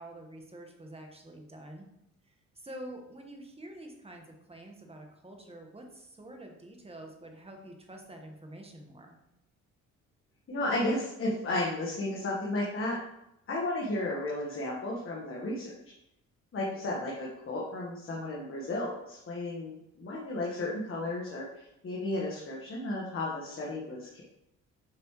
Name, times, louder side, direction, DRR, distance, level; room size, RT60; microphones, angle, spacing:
voice 1, 0.0-1.9 2.2-9.2, right 1 dB, 20° right, 2 dB, 1.5 m, -47 dB
voice 2, 10.5-13.0 13.5-15.7 16.5-24.2, left 2 dB, 45° left, -3 dB, 1.6 m, -33 dB
7.8 x 5.2 x 3.2 m, 0.83 s
cardioid pair, 90°, 30 cm